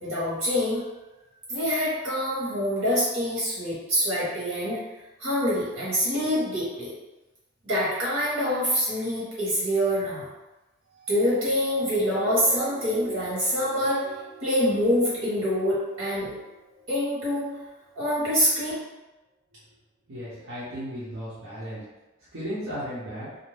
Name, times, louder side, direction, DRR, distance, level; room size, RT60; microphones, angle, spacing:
voice 1, 0.0-0.8 1.5-4.8 5.2-6.9 7.6-10.3 11.1-14.1 14.4-16.3 16.9-17.5 17.9-18.7, equal, 90° right, -8 dB, 1.4 m, -25 dB
sound 1, 11.0-17.6 18.3-18.4, right 2 dB, 25° right, 0.4 m, -44 dB
voice 2, 20.1-21.8 22.3-23.3, equal, 65° right, -11 dB, 0.8 m, -35 dB
2.6 x 2.0 x 3.2 m, 1.1 s
head